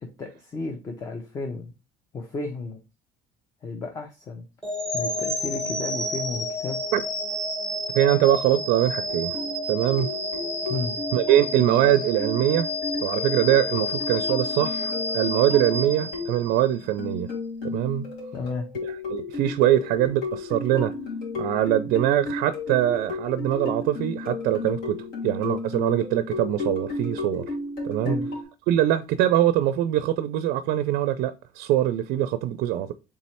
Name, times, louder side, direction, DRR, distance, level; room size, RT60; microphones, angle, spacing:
voice 1, 0.0-1.7 2.1-2.8 3.6-4.4 4.9-6.8 10.7-11.0 18.3-18.7 28.0-28.3, left 3 dB, 20° left, 0.5 m, -33 dB
sound 1, 4.6-16.7, left 1 dB, 5° left, 0.8 m, -30 dB
voice 2, 7.9-9.4 9.7-10.1 11.1-12.7 13.0-17.3 17.6-18.1 18.8-20.9 21.4-25.0 25.2-27.4 27.8-28.2 28.7-32.9, right 12 dB, 75° right, 0.4 m, -23 dB
sound 2, 9.1-28.4, left 3 dB, 75° left, 2.2 m, -34 dB
3.6 x 3.1 x 4.2 m
cardioid pair, 175°, 15 cm